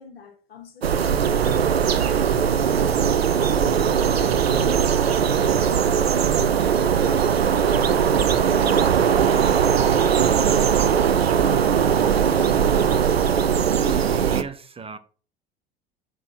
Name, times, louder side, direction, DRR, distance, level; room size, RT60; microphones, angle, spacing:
voice 1, 0.0-3.1 3.4-13.1, left 5 dB, 75° left, 3.0 m, -43 dB
sound 1, 0.8-14.4, right 7 dB, 85° right, 0.6 m, -20 dB
voice 2, 13.8-15.0, right 5 dB, 20° right, 1.3 m, -35 dB
7.6 x 5.9 x 6.0 m
figure-of-eight pair, 65°, 30 cm